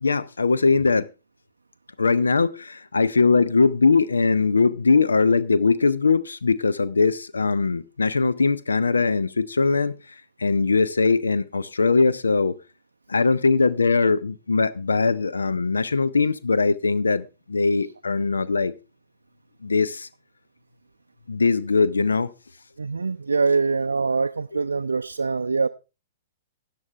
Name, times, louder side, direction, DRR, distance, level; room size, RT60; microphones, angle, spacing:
voice 1, 0.0-1.1 2.0-12.6 13.1-18.7 19.6-20.1 21.3-22.3 24.5-24.6, left 4 dB, 75° left, 0.5 m, -21 dB
voice 2, 22.8-25.7, right 4 dB, 75° right, 0.4 m, -23 dB
13.5 x 9.1 x 3.3 m
figure-of-eight pair, 110°, 0 cm